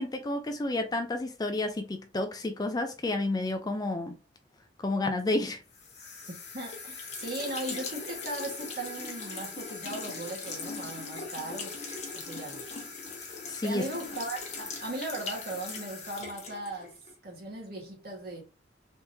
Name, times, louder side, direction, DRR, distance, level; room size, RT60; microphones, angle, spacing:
voice 1, 0.0-4.2 4.8-5.6 13.2-13.9, left 2 dB, 20° left, 0.4 m, -31 dB
sound 1, 5.7-17.2, left 4 dB, 35° left, 0.9 m, -40 dB
voice 2, 6.5-11.8 12.1-12.6 13.6-16.9 17.2-18.4, right 2 dB, 55° right, 1.4 m, -38 dB
3.4 x 2.8 x 2.7 m
head